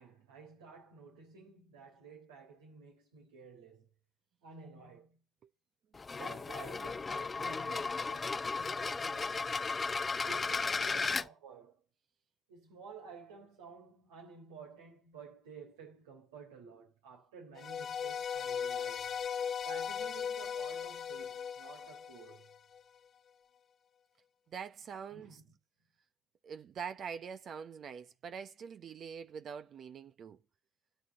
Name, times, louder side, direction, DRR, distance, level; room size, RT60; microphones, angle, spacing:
voice 1, 0.0-3.9 4.4-5.2 6.1-9.4 10.2-11.8 12.5-19.1 19.6-22.5 25.1-25.5, right 4 dB, 90° right, 3.8 m, -52 dB
sound 1, 5.9-11.3, left 4 dB, 30° left, 0.6 m, -35 dB
sound 2, 17.6-22.8, left 7 dB, 50° left, 1.1 m, -38 dB
voice 2, 24.5-25.4 26.4-30.4, right 7 dB, 55° right, 0.8 m, -44 dB
13.0 x 9.0 x 8.2 m
hypercardioid pair, 60°, 0 cm